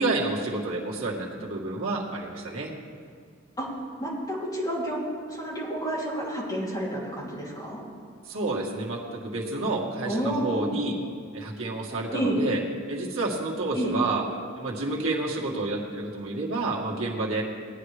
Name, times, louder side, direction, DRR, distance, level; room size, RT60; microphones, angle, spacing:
voice 1, 0.0-2.7 8.3-11.0 11.3-12.6 12.9-14.2 14.6-17.4, right 2 dB, 80° right, -3 dB, 1.8 m, -29 dB
voice 2, 4.0-5.0 5.3-7.8 10.0-10.7 12.1-12.4 13.7-13.9, right 1 dB, 20° left, -5 dB, 2.7 m, -30 dB
17.5 x 9.7 x 3.3 m, 2.2 s
head